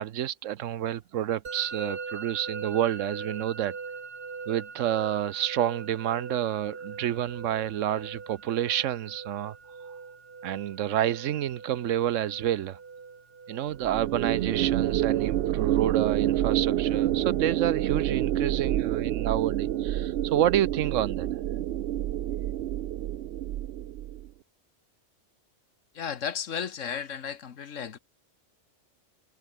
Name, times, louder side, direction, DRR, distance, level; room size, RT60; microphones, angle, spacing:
voice 1, 0.0-3.8 4.5-9.5 10.4-12.8 13.5-21.4, right 11 dB, 90° right, 1.1 m, -29 dB
Musical instrument, 1.4-20.3, right 5 dB, 50° right, 1.7 m, -43 dB
sound 1, 13.8-24.3, right 13 dB, 65° right, 0.7 m, -28 dB
voice 2, 25.9-28.0, left 7 dB, 80° left, 1.6 m, -34 dB
omnidirectional pair, 1.3 m